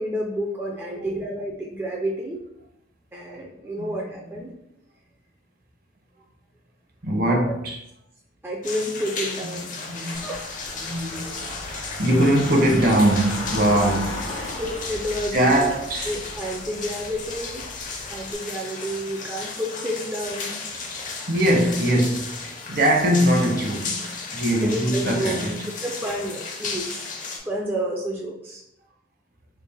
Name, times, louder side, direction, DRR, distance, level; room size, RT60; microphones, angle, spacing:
voice 1, 0.0-2.4 3.1-4.5 8.4-9.7 9.9-10.5 14.3-15.7 16.1-17.6 18.1-20.6 24.6-25.4 25.8-27.0 27.4-28.6, equal, 10° right, 0.3 m, -30 dB
voice 2, 7.0-7.8 9.5-10.3 10.8-14.2 15.3-16.2 21.3-25.6, right 1 dB, 50° right, 0.7 m, -22 dB
sound 1, 8.6-27.4, left 4 dB, 40° left, 0.5 m, -34 dB
Car / Engine, 10.1-18.3, left 1 dB, 75° left, 0.8 m, -36 dB
3.3 x 2.4 x 3.3 m
head